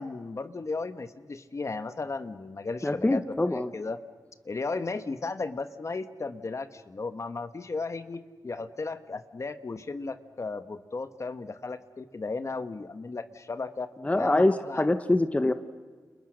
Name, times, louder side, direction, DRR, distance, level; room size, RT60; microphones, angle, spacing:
voice 1, 0.0-3.2 3.5-4.0 4.4-13.9 14.2-14.9, left 3 dB, 45° left, 10 dB, 1.4 m, -35 dB
voice 2, 2.8-3.7 14.0-15.5, left 2 dB, 20° left, 10 dB, 1.1 m, -24 dB
30.0 x 29.5 x 6.5 m, 1.5 s
wide cardioid pair, 90°, 7 cm